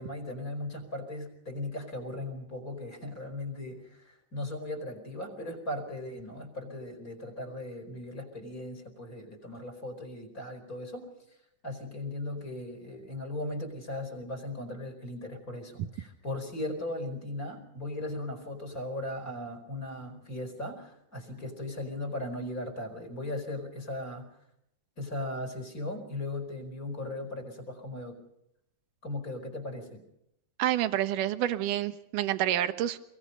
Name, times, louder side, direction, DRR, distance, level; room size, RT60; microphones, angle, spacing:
voice 1, 0.0-11.4 11.6-24.3 25.0-28.2 29.0-30.0, left 1 dB, 25° left, 6 dB, 4.7 m, -38 dB
voice 2, 30.6-33.0, right 12 dB, 75° right, 11 dB, 2.7 m, -28 dB
27.0 x 22.0 x 5.4 m, 0.78 s
omnidirectional pair, 3.8 m